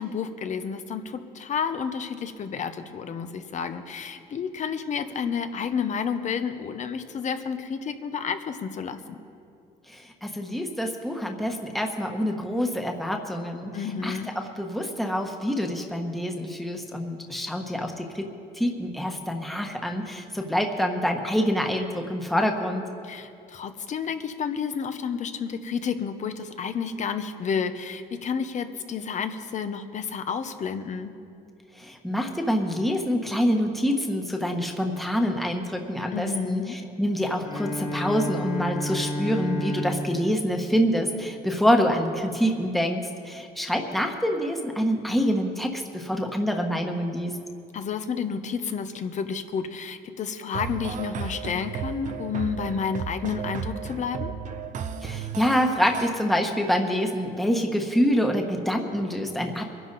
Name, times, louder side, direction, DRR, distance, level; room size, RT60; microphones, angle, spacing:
voice 1, 0.0-9.2 13.7-14.3 23.0-31.1 36.1-36.8 47.7-54.3, left 6 dB, 45° left, 9 dB, 1.0 m, -30 dB
voice 2, 9.9-18.3 18.5-22.8 31.8-47.3 55.0-59.6, equal, ahead, 2 dB, 1.4 m, -26 dB
Bowed string instrument, 37.4-41.7, equal, 60° left, 2.9 m, -33 dB
sound 1, 50.5-56.1, right 6 dB, 50° right, 0.8 m, -34 dB
23.5 x 11.0 x 4.1 m, 2.5 s
cardioid pair, 110°, 17 cm